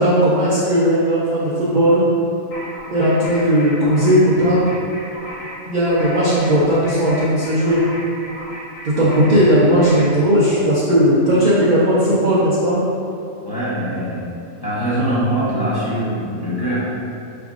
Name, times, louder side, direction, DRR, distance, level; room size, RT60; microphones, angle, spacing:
voice 1, 0.0-2.0 2.9-4.7 5.7-7.8 8.8-12.8, equal, 60° right, -8 dB, 0.4 m, -16 dB
sound 1, 2.5-10.2, equal, 90° left, 1.6 m, -35 dB
voice 2, 13.4-16.8, right 1 dB, 20° left, -11 dB, 0.7 m, -23 dB
4.8 x 3.4 x 2.4 m, 2.7 s
omnidirectional pair, 1.5 m